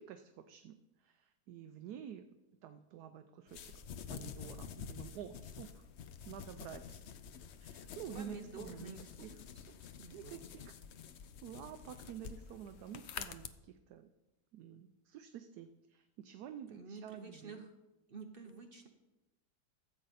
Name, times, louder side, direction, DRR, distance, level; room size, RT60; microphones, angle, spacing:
voice 1, 0.0-2.3 2.6-3.7 4.1-5.8 6.2-7.0 7.6-8.9 9.2-9.4 10.1-10.7 11.4-14.1 14.5-17.6, right 9 dB, 75° right, 9 dB, 1.1 m, -49 dB
sound 1, 3.5-13.5, left 7 dB, 75° left, 0.6 m, -49 dB
voice 2, 8.1-9.3 9.5-10.5 16.7-17.7 18.1-18.9, right 4 dB, 50° right, 5 dB, 0.7 m, -50 dB
13.5 x 7.8 x 4.1 m, 1.0 s
omnidirectional pair, 1.8 m